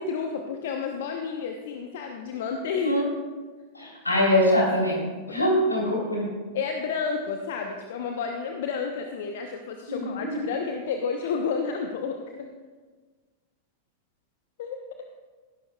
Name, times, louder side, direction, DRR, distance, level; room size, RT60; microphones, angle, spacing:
voice 1, 0.0-3.0 5.3-5.4 6.5-12.5 14.6-15.1, left 5 dB, 55° left, 4 dB, 0.9 m, -31 dB
voice 2, 3.7-6.3 9.9-10.5, left 1 dB, 80° left, -2 dB, 3.6 m, -24 dB
17.0 x 11.5 x 2.4 m, 1.4 s
figure-of-eight pair, 90°, 0 cm